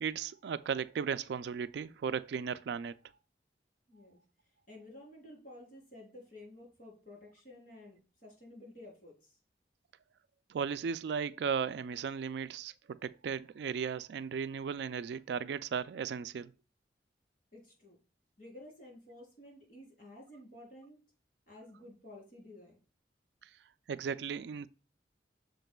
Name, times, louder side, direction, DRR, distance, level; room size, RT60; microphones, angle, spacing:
voice 1, 0.0-3.0 10.5-16.5 23.9-24.7, right 6 dB, 70° right, 0.3 m, -36 dB
voice 2, 3.9-4.2 4.7-9.4 17.5-18.0 18.4-21.0 21.5-22.8, left 1 dB, 50° left, 3.5 m, -52 dB
7.9 x 6.7 x 2.3 m
head